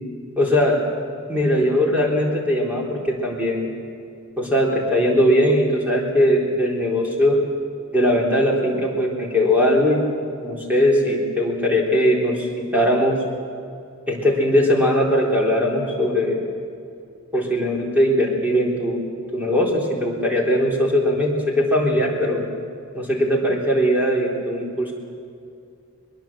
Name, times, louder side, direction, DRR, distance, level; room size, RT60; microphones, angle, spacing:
voice 1, 0.4-0.8 1.3-3.7 4.4-7.4 7.9-10.1 10.4-13.2 14.1-16.4 17.3-19.0 19.3-22.4 22.9-24.9, equal, 10° right, -3 dB, 3.8 m, -20 dB
23.5 x 22.0 x 7.6 m, 2.4 s
head